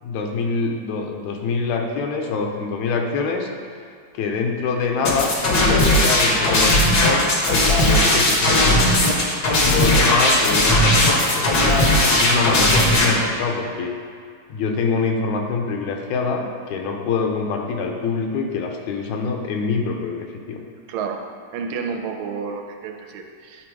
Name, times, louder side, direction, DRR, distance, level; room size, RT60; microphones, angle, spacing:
voice 1, 0.0-3.5 4.1-9.0 9.6-13.9 14.5-20.6, left 4 dB, 80° left, 2 dB, 2.1 m, -25 dB
sound 1, 5.0-13.1, left 1 dB, 60° left, 1.0 m, -17 dB
voice 2, 12.1-12.5 20.9-21.2 21.5-23.7, right 5 dB, 80° right, 3 dB, 2.0 m, -30 dB
10.0 x 4.0 x 4.7 m, 2.1 s
omnidirectional pair, 3.3 m